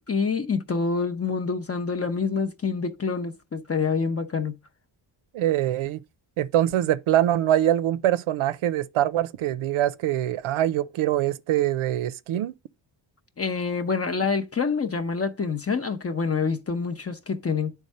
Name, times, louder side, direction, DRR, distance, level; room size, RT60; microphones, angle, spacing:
voice 1, 0.1-4.5 13.4-17.7, left 5 dB, 30° left, 0.7 m, -26 dB
voice 2, 5.3-6.0 6.4-12.5, right 12 dB, 85° right, 0.6 m, -24 dB
9.7 x 3.6 x 5.4 m
cardioid pair, 115°, 48 cm